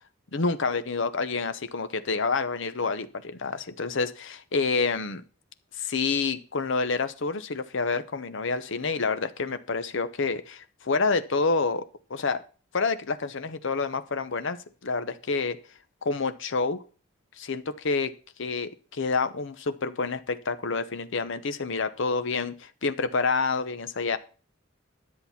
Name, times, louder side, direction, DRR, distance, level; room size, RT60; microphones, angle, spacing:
voice 1, 0.3-5.2 5.8-11.8 12.1-12.4 12.7-14.6 14.8-15.6 16.0-16.8 17.4-18.1 18.4-24.2, left 4 dB, 65° left, 11 dB, 0.8 m, -28 dB
11.0 x 7.7 x 5.7 m, 0.37 s
head